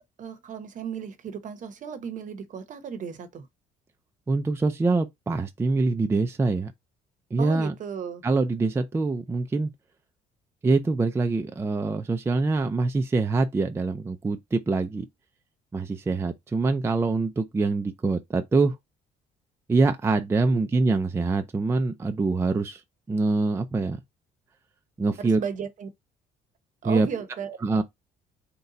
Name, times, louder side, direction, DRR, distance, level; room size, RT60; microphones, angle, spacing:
voice 1, 0.2-3.5 7.4-8.2 20.5-20.6 25.4-25.9 26.8-27.8, right 7 dB, 50° right, 0.8 m, -35 dB
voice 2, 4.3-6.7 7.3-7.7 8.2-9.7 10.6-15.1 15.7-18.8 19.7-22.8 23.1-24.0 25.0-25.4 26.8-27.1 27.6-27.8, right 3 dB, 15° right, 0.4 m, -24 dB
4.0 x 2.3 x 3.9 m
cardioid pair, 110°, 17 cm